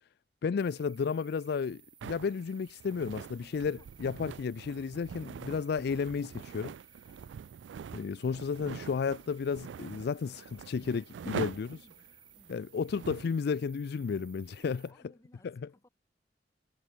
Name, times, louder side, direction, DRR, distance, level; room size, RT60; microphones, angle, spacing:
voice 1, 0.4-6.7 7.9-11.8 12.5-14.8 15.4-15.5, left 5 dB, 65° left, 0.4 m, -33 dB
sound 1, 0.6-14.9, right 9 dB, 25° right, 1.0 m, -59 dB
sound 2, 2.0-13.4, right 7 dB, 85° right, 0.3 m, -44 dB
voice 2, 14.6-15.9, left 1 dB, 20° left, 4.5 m, -63 dB
head